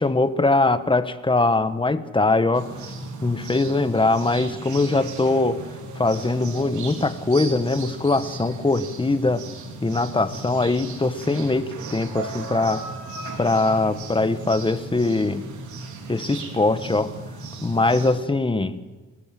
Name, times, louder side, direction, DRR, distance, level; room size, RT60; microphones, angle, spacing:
voice 1, 0.0-2.7 3.2-5.6 5.9-9.5 9.8-12.8 13.4-15.5 16.1-17.1 17.6-18.8, left 2 dB, 15° left, 11 dB, 1.4 m, -22 dB
sound 1, 2.5-18.1, right 3 dB, 75° right, 4.2 m, -36 dB
29.0 x 15.0 x 7.8 m, 1.3 s
cardioid pair, 90°, 30 cm